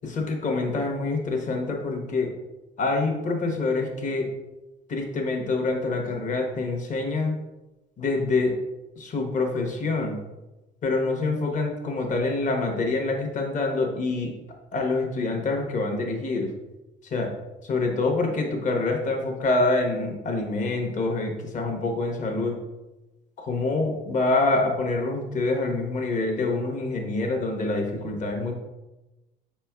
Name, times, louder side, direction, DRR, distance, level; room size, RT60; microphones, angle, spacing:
voice 1, 0.0-2.3 2.8-4.3 4.9-7.3 8.0-8.5 9.0-10.2 10.8-14.3 14.7-16.5 17.1-17.3 17.6-22.6 23.4-28.5, left 3 dB, 40° left, 2 dB, 1.0 m, -26 dB
5.4 x 4.3 x 2.3 m, 1.0 s
cardioid pair, 105°, 20 cm